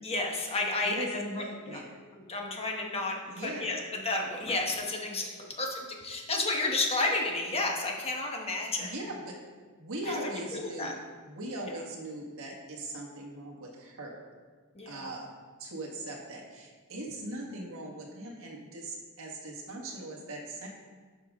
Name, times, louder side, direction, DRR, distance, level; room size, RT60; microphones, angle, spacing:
voice 1, 0.0-1.1 1.7-1.8 2.3-3.2 3.4-5.3 5.6-8.9 10.1-10.2 10.5-10.9 14.8-15.1, left 2 dB, 25° left, 1 dB, 1.2 m, -31 dB
voice 2, 0.8-2.0 3.3-3.7 8.6-9.3 9.8-11.0 11.2-14.2 14.8-15.3 15.6-20.7, right 1 dB, 65° right, -2 dB, 1.6 m, -40 dB
11.5 x 5.2 x 3.7 m, 1.5 s
head